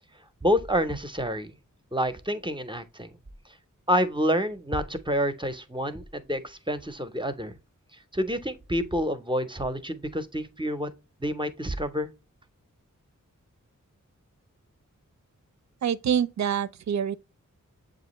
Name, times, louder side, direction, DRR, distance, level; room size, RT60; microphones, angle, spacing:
voice 1, 0.4-1.5 1.9-3.1 3.9-7.6 8.1-10.9 11.2-12.1, equal, 15° right, 0.6 m, -28 dB
voice 2, 15.8-17.2, right 8 dB, 60° right, 0.4 m, -26 dB
7.3 x 2.5 x 2.9 m
cardioid pair, 50°, 32 cm